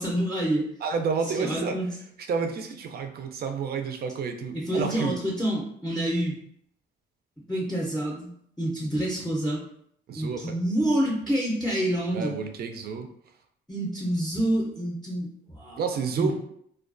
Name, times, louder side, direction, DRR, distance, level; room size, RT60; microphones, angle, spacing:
voice 1, 0.0-0.7 1.4-1.9 4.5-6.4 7.5-8.3 8.6-9.6 10.1-12.4 13.7-15.8 16.2-16.3, right 1 dB, 5° left, -3 dB, 0.5 m, -27 dB
voice 2, 0.8-1.8 2.3-5.2 10.1-10.6 12.1-13.1 15.8-16.3, right 5 dB, 50° right, 6 dB, 0.4 m, -30 dB
2.3 x 2.2 x 2.5 m, 0.67 s
cardioid pair, 90°, 20 cm